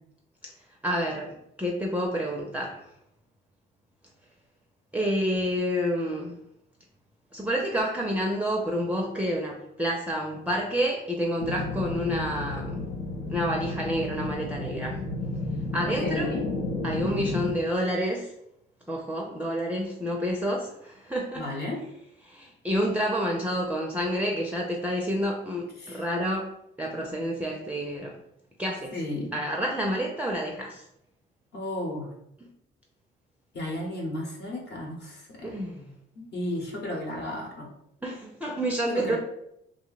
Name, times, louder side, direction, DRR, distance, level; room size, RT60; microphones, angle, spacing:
voice 1, 0.8-2.8 4.9-6.4 7.3-12.8 13.3-15.0 15.7-16.3 16.8-18.3 18.9-21.5 22.2-26.5 26.8-28.2 28.6-29.0 29.3-30.8 35.4-35.9 38.0-39.2, equal, 5° right, -1 dB, 0.4 m, -29 dB
sound 1, 11.4-17.5, left 2 dB, 85° left, 0.7 m, -32 dB
voice 2, 16.0-16.4 21.4-21.8 25.8-26.0 28.9-29.4 31.5-32.1 33.5-35.6 36.1-37.7 38.9-39.2, left 1 dB, 55° left, 0 dB, 1.0 m, -33 dB
2.6 x 2.1 x 3.9 m, 0.76 s
cardioid pair, 90°, 20 cm